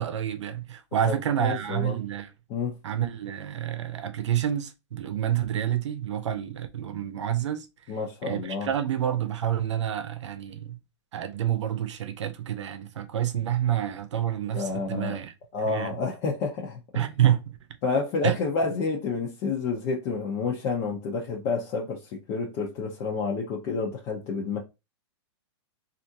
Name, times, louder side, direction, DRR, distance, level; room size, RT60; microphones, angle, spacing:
voice 1, 0.0-2.3 2.8-7.7 8.2-10.8 11.1-15.3 15.6-16.0 16.9-17.4 18.2-18.4, right 10 dB, 85° right, 0.7 m, -28 dB
voice 2, 1.0-1.9 2.5-2.8 7.9-8.7 14.5-15.2 15.5-17.1 17.8-24.6, left 4 dB, 35° left, 0.7 m, -29 dB
3.3 x 2.6 x 2.7 m
hypercardioid pair, 145°, 15 cm